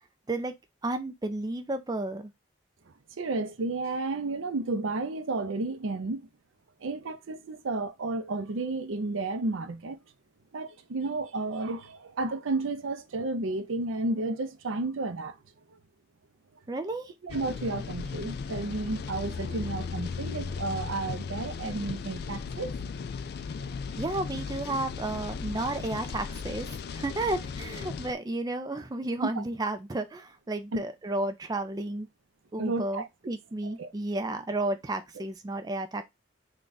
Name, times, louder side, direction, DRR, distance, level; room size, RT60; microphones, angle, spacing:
voice 1, 0.8-2.3 16.7-17.1 24.0-32.1 32.5-36.0, right 2 dB, 20° right, 0.4 m, -32 dB
voice 2, 3.2-6.2 6.8-10.0 10.5-15.4 17.2-22.7 23.6-23.8 29.2-29.4 32.6-33.1 33.6-33.9, right 3 dB, 90° right, 0.6 m, -32 dB
sound 1, 17.3-28.1, left 5 dB, 50° left, 0.3 m, -36 dB
3.6 x 2.3 x 3.9 m
head